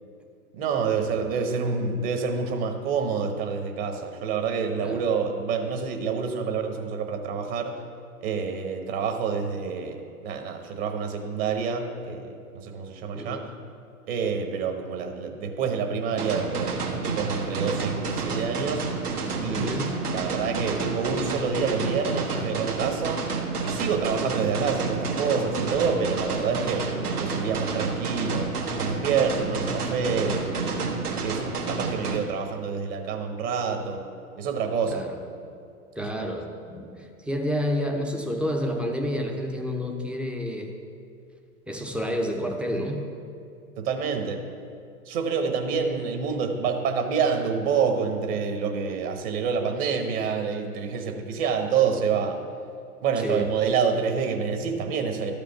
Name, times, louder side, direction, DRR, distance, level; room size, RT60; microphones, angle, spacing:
voice 1, 0.5-7.8 8.2-12.3 12.6-13.5 14.1-18.8 19.4-19.8 20.1-23.2 23.6-26.9 27.2-30.9 31.2-34.0 34.4-35.1 36.0-36.2 43.8-44.4 45.1-52.4 53.0-55.3, right 6 dB, 40° right, 5 dB, 1.2 m, -27 dB
sound 1, 16.2-32.2, right 4 dB, 75° right, 1.6 m, -30 dB
voice 2, 19.5-19.9 34.9-35.2 36.0-40.7 41.7-43.1 53.2-53.5, equal, ahead, 3 dB, 0.6 m, -29 dB
12.5 x 5.2 x 7.0 m, 2.5 s
figure-of-eight pair, 105°, 45 cm